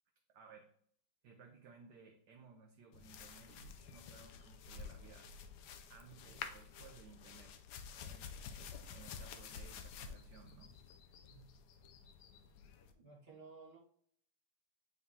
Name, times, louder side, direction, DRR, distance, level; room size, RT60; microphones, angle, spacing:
voice 1, 0.3-0.7 1.2-5.3 5.9-7.5 7.9-10.8, right 5 dB, 70° right, 3 dB, 1.1 m, -59 dB
sound 1, 2.9-12.9, left 6 dB, 70° left, 1.1 m, -51 dB
voice 2, 12.9-13.8, right 4 dB, 30° right, -3 dB, 1.8 m, -56 dB
9.3 x 3.7 x 2.8 m, 0.64 s
omnidirectional pair, 2.2 m